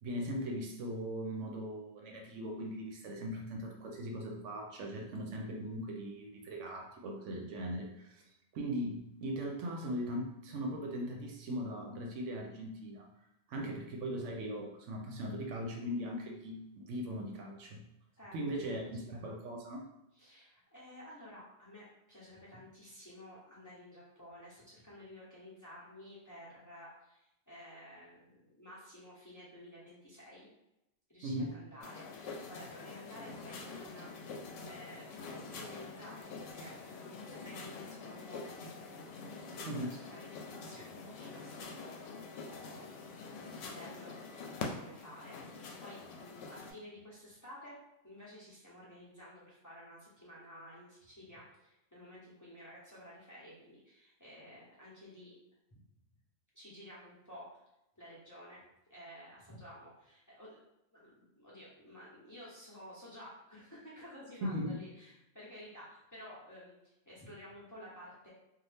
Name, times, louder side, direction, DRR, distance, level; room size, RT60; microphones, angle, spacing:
voice 1, 0.0-8.2 8.5-13.1 13.5-17.8 18.3-19.8 31.2-31.6 39.7-39.9 64.4-64.8, equal, 75° right, 1 dB, 0.9 m, -39 dB
voice 2, 18.1-19.2 20.1-30.5 31.1-34.1 34.6-38.7 39.5-43.0 43.6-47.8 48.0-55.4 55.7-55.8 56.5-57.6 58.0-58.6 58.9-60.6 60.9-68.3, left 1 dB, 20° left, -7 dB, 0.7 m, -53 dB
sound 1, 31.8-46.7, left 4 dB, 80° left, 0.9 m, -46 dB
2.7 x 2.4 x 3.3 m, 0.87 s
omnidirectional pair, 1.3 m